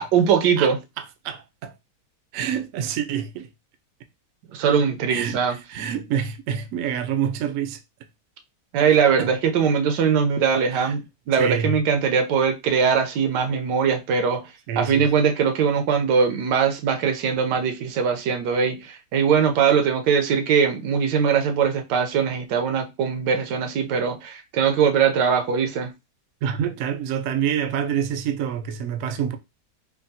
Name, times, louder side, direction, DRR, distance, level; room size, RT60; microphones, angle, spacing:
voice 1, 0.0-0.8 4.5-5.6 8.7-14.4 14.8-25.9, right 6 dB, 90° right, 1.3 m, -21 dB
voice 2, 0.6-1.7 2.3-3.5 5.1-7.8 8.8-8.9 9.2-9.3 10.7-10.9 11.4-11.8 14.7-15.1 26.4-29.4, right 8 dB, 70° right, 0.8 m, -27 dB
3.5 x 2.2 x 2.6 m
omnidirectional pair, 1.8 m